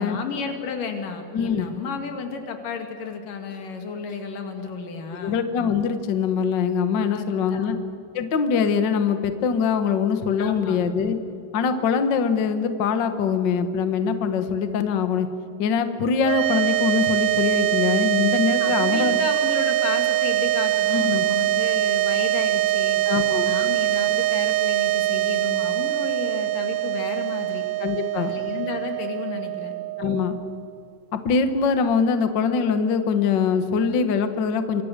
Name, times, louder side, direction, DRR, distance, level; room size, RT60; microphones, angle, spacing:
voice 1, 0.0-5.4 7.1-7.8 10.4-10.8 18.6-23.0 23.3-27.6 28.1-29.7, left 5 dB, 75° left, 5 dB, 3.9 m, -32 dB
voice 2, 1.3-1.7 5.2-7.8 8.1-11.2 11.5-15.3 15.6-19.2 20.9-21.3 23.1-23.5 27.8-28.4 30.0-30.4 31.1-34.8, left 6 dB, 55° left, 8 dB, 1.3 m, -23 dB
sound 1, 16.2-30.6, right 15 dB, 75° right, 1.7 m, -23 dB
26.5 x 23.5 x 6.7 m, 2.8 s
omnidirectional pair, 3.9 m